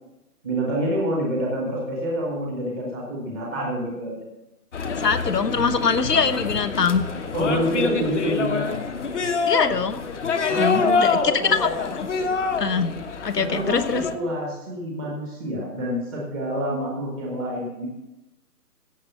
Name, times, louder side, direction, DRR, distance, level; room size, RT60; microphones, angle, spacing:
voice 1, 0.4-4.2 7.3-8.8 10.5-11.7 13.4-13.8 14.1-17.9, right 1 dB, ahead, -3 dB, 0.7 m, -27 dB
sound 1, 4.7-14.1, left 5 dB, 45° left, 1.2 m, -26 dB
voice 2, 5.0-7.1 9.5-10.1 10.5-11.9 12.6-12.9 13.2-14.0, left 5 dB, 75° left, 12 dB, 1.1 m, -23 dB
16.5 x 6.6 x 5.6 m, 0.99 s
figure-of-eight pair, 140°, 49 cm